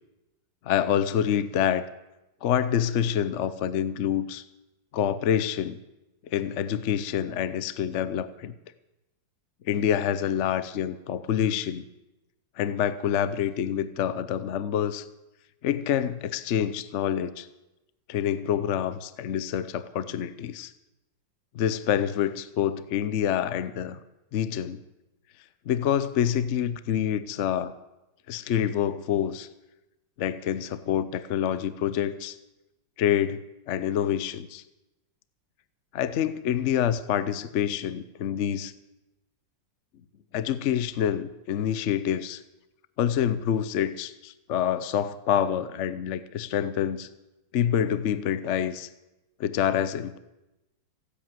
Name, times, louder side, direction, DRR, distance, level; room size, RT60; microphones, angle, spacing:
voice 1, 0.6-1.9 2.4-4.4 4.9-5.8 6.3-8.5 9.6-11.8 12.6-15.0 15.6-17.5 18.1-20.7 21.5-24.0 24.3-24.8 25.7-27.7 28.3-29.5 30.2-32.4 33.0-34.6 35.9-38.7 40.3-42.4 43.0-47.1 47.5-48.9 49.4-50.2, left 9 dB, 70° left, 14 dB, 0.7 m, -27 dB
16.0 x 8.3 x 9.1 m, 0.99 s
omnidirectional pair, 2.1 m